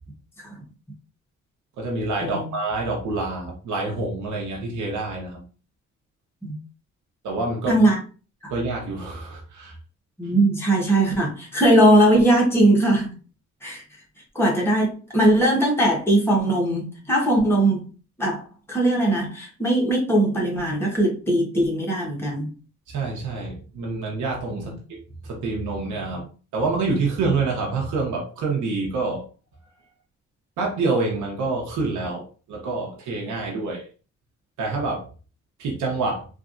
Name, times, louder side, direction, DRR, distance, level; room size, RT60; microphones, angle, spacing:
voice 1, 1.8-5.4 7.2-7.8 8.5-9.8 22.9-25.0 25.2-29.2 30.6-33.9 34.6-35.1 35.6-36.3, right 3 dB, 75° right, -1 dB, 1.0 m, -27 dB
voice 2, 7.7-8.0 8.4-8.5 10.2-13.1 13.6-13.8 14.3-17.9 18.2-18.4 18.7-22.5 24.6-24.7, right 1 dB, 10° left, -3 dB, 1.2 m, -20 dB
3.2 x 2.5 x 2.6 m, 0.37 s
cardioid pair, 90°, 30 cm